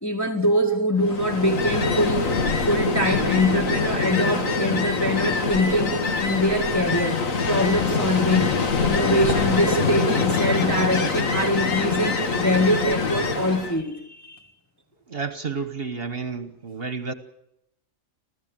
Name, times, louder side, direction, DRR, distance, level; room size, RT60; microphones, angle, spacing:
voice 1, 0.0-14.5, equal, 15° left, 1.9 m, -24 dB
Ocean, 1.0-13.8, left 4 dB, 85° left, 2.1 m, -24 dB
voice 2, 15.1-17.1, right 5 dB, 50° right, 1.4 m, -31 dB
27.5 x 15.5 x 9.0 m
omnidirectional pair, 1.3 m